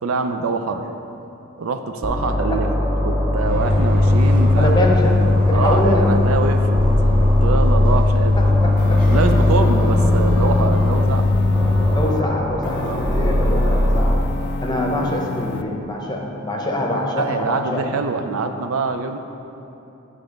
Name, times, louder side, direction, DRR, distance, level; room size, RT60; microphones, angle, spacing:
voice 1, 0.0-0.9 1.6-2.7 3.0-4.8 5.5-6.8 7.1-8.4 9.1-11.3 12.8-13.0 17.2-19.2, right 4 dB, 85° right, 7 dB, 0.5 m, -24 dB
sound 1, 2.0-4.9 5.2-8.0 8.3-11.1 11.5-14.1, equal, 15° right, 0.6 m, -22 dB
sound 2, 3.4-11.9, left 2 dB, 45° right, 1.7 m, -18 dB
voice 2, 4.6-6.1 8.4-9.0 11.9-14.2 14.6-18.0, left 1 dB, 20° left, 0 dB, 0.8 m, -24 dB
sound 3, 8.8-12.2 12.6-15.6, left 3 dB, 55° left, 0.3 m, -29 dB
9.9 x 3.4 x 5.1 m, 2.9 s
head